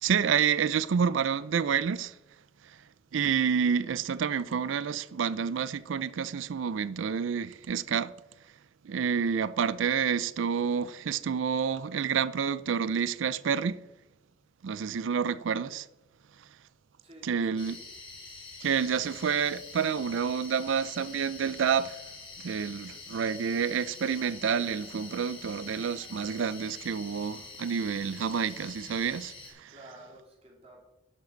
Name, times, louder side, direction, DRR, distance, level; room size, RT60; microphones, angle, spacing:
voice 1, 0.0-2.2 3.1-8.1 8.8-13.8 14.6-15.9 17.2-17.8 18.6-22.0 22.4-29.7, right 7 dB, 85° right, 0.4 m, -29 dB
voice 2, 17.0-17.8 29.7-30.8, right 1 dB, 30° right, 3.1 m, -52 dB
sound 1, 17.6-29.5, left 3 dB, 25° left, 2.7 m, -46 dB
10.5 x 7.4 x 5.2 m
head